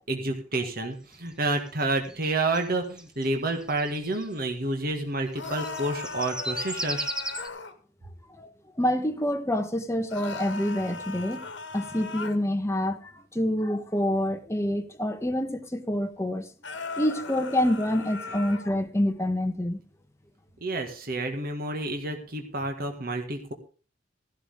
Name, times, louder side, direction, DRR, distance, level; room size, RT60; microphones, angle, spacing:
voice 1, 0.1-7.1 20.6-23.5, right 2 dB, 55° right, 1.9 m, -29 dB
sound 1, 1.1-4.4 5.3-7.5, right 1 dB, 5° right, 1.0 m, -36 dB
sound 2, 5.3-7.7 10.1-12.4 16.6-18.8, left 4 dB, 70° left, 1.6 m, -38 dB
voice 2, 8.8-16.5 17.0-19.8, left 1 dB, 15° left, 1.1 m, -27 dB
15.0 x 12.0 x 3.6 m
head